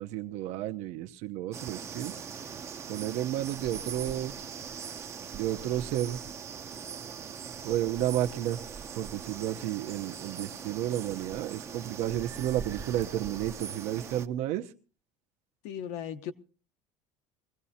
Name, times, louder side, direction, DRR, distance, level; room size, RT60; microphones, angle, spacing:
voice 1, 0.0-2.1 2.9-4.3 5.3-6.2 7.6-8.6 8.9-14.7, right 13 dB, 65° right, 0.9 m, -32 dB
sound 1, 1.5-14.3, right 6 dB, 20° right, 0.7 m, -41 dB
voice 2, 15.6-16.3, left 9 dB, 65° left, 1.1 m, -36 dB
23.0 x 16.5 x 2.8 m
cardioid pair, 165°, 12 cm